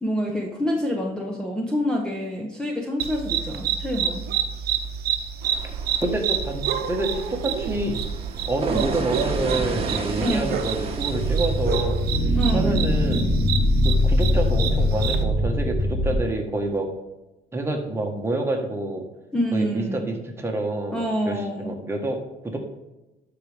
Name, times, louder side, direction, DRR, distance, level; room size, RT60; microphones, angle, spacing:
voice 1, 0.0-4.2 8.7-8.9 10.2-10.6 12.3-12.8 19.3-20.1 20.9-21.7, equal, 5° left, 0 dB, 1.1 m, -27 dB
sound 1, 3.0-15.2, right 8 dB, 70° right, 0.9 m, -29 dB
sound 2, 5.4-11.7, right 4 dB, 35° right, 1.3 m, -32 dB
voice 2, 6.0-8.0 8.5-13.2 13.8-16.9 17.5-19.0 19.5-22.2 22.4-22.6, right 2 dB, 15° right, 2 dB, 1.6 m, -28 dB
sound 3, 11.1-16.1, left 1 dB, 65° left, 2.1 m, -22 dB
12.0 x 4.9 x 3.5 m, 1.0 s
cardioid pair, 110°, 17 cm